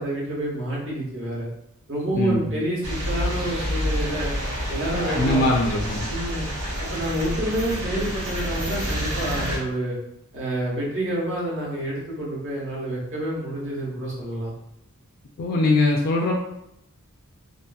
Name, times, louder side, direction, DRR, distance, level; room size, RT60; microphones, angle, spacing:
voice 1, 0.0-1.5 1.9-4.3 4.7-5.5 6.1-6.5 6.8-10.0 10.3-14.5, right 1 dB, 60° right, -5 dB, 1.0 m, -28 dB
voice 2, 2.2-2.5 5.2-6.1 15.4-16.4, left 2 dB, 45° left, -1 dB, 0.3 m, -21 dB
sound 1, 2.8-9.6, equal, 90° right, 0.8 m, -28 dB
2.7 x 2.5 x 2.2 m, 0.79 s
head